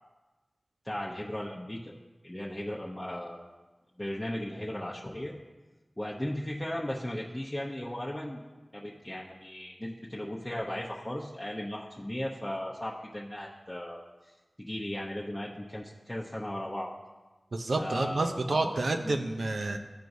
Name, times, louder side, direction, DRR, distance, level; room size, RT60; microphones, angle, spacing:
voice 1, 0.8-1.9 2.2-3.4 4.0-5.3 6.0-8.4 8.7-16.9 17.8-18.7 19.0-19.2, left 1 dB, 15° left, -4 dB, 0.9 m, -36 dB
voice 2, 17.5-19.8, right 2 dB, 80° right, 5 dB, 0.6 m, -29 dB
13.5 x 4.6 x 2.7 m, 1.2 s
wide cardioid pair, 45°, 0 cm